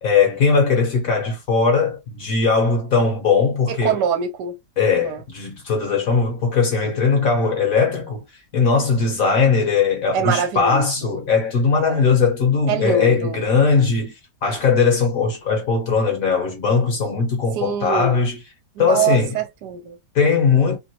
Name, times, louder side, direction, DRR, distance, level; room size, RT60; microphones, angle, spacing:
voice 1, 0.0-4.0 4.8-8.2 8.5-14.1 14.4-18.4 18.8-19.4 20.1-20.8, left 5 dB, 60° left, 1.2 m, -19 dB
voice 2, 3.7-4.6 5.0-5.2 10.1-11.2 11.8-12.0 12.7-13.4 14.5-14.6 17.6-18.2 18.8-20.0, right 8 dB, 80° right, 1.2 m, -24 dB
3.1 x 2.4 x 2.8 m
omnidirectional pair, 1.8 m